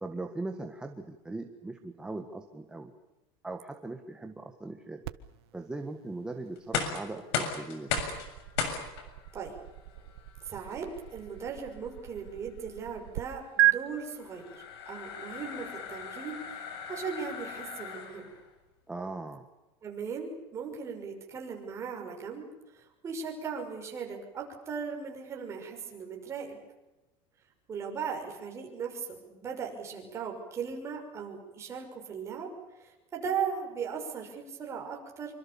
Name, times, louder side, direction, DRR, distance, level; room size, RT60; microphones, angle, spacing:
voice 1, 0.0-2.9 3.4-5.0 5.5-7.9 18.9-19.5, right 2 dB, 5° right, 4 dB, 1.5 m, -39 dB
sound 1, 5.0-13.2 13.6-13.7, right 17 dB, 90° right, 1.5 m, -34 dB
sound 2, 6.6-18.4, left 6 dB, 80° left, 6.8 m, -38 dB
voice 2, 10.4-14.5 14.9-16.6 16.9-18.3 19.8-22.5 22.7-26.6 27.7-35.4, right 6 dB, 20° right, 1 dB, 6.2 m, -38 dB
26.5 x 25.5 x 7.1 m, 1.0 s
supercardioid pair, 165°, 13 cm